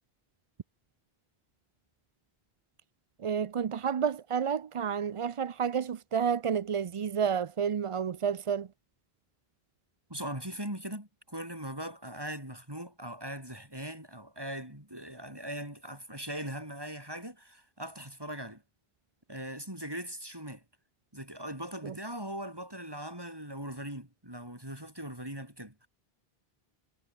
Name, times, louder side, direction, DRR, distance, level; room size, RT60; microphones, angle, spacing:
voice 1, 3.2-8.7 21.8-21.9, right 7 dB, 45° right, 0.4 m, -30 dB
voice 2, 10.1-18.6 19.3-20.6 21.1-25.9, right 1 dB, 20° right, 6.3 m, -40 dB
omnidirectional pair, 1.0 m